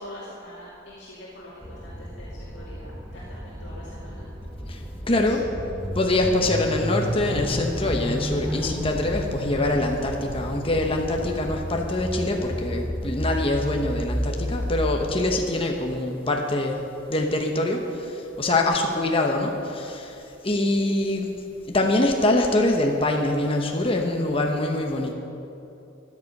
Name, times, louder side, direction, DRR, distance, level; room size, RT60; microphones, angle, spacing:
voice 1, 0.0-4.3 5.0-5.5, left 1 dB, 65° left, -8 dB, 2.4 m, -44 dB
sound 1, 1.6-15.3, equal, 10° right, 1.4 m, -32 dB
voice 2, 4.7-5.4 5.9-16.8 17.1-21.3 21.7-25.1, left 2 dB, 30° left, 1 dB, 1.1 m, -24 dB
15.5 x 10.5 x 5.4 m, 2.8 s
head